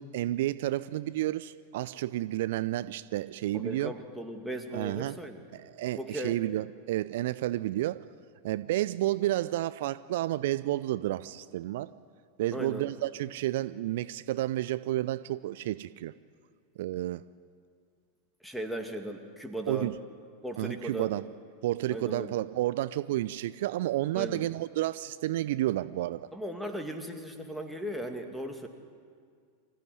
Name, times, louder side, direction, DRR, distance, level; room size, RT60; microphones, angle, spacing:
voice 1, 0.0-3.9 4.7-5.2 5.5-8.0 8.4-11.9 12.4-16.1 16.8-17.2 19.7-19.9 20.6-21.3 21.6-26.3, right 15 dB, 60° right, 15 dB, 0.5 m, -31 dB
voice 2, 3.5-5.5 6.0-6.4 12.5-12.9 18.4-19.9 20.4-21.1 21.9-22.3 24.1-24.4 26.3-28.7, right 1 dB, ahead, 4 dB, 2.4 m, -37 dB
25.5 x 15.0 x 9.7 m, 2.1 s
figure-of-eight pair, 90°, 0 cm